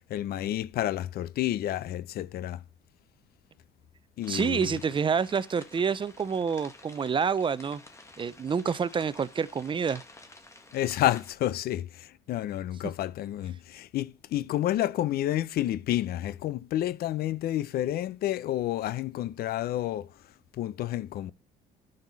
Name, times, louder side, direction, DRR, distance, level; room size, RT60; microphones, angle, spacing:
voice 1, 0.1-2.6 4.2-4.8 10.7-20.1 20.6-21.3, left 13 dB, 65° left, 0.6 m, -30 dB
sound 1, 4.2-11.3, left 2 dB, 15° left, 2.0 m, -51 dB
voice 2, 4.3-7.8 8.2-10.0, right 6 dB, 30° right, 0.6 m, -28 dB
10.5 x 6.6 x 4.0 m
cardioid pair, 110°, 17 cm